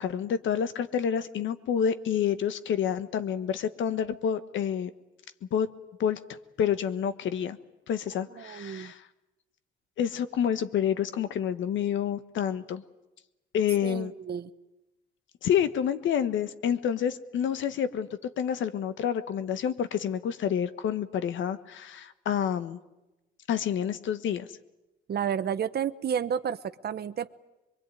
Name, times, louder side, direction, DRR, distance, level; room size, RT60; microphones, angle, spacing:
voice 1, 0.0-4.9 5.5-5.7 6.0-6.2 6.6-7.6 7.9-9.0 10.0-12.8 13.5-14.1 15.4-18.1 18.4-22.8 23.5-24.5, left 8 dB, 75° left, 12 dB, 1.3 m, -28 dB
voice 2, 8.4-8.9 13.8-14.5 25.1-27.3, right 8 dB, 55° right, 13 dB, 1.0 m, -31 dB
23.0 x 23.0 x 9.1 m, 0.99 s
cardioid pair, 90°, 20 cm